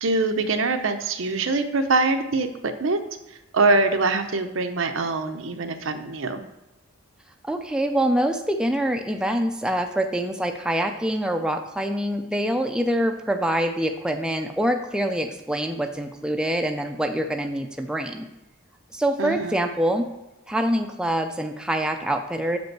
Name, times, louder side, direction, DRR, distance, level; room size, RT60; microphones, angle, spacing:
voice 1, 0.0-3.0 3.5-6.4 19.2-19.6, right 3 dB, 80° right, 8 dB, 0.7 m, -23 dB
voice 2, 7.5-18.3 18.9-20.1 20.5-22.6, right 1 dB, 5° right, 4 dB, 0.4 m, -25 dB
6.9 x 5.2 x 4.6 m, 0.97 s
head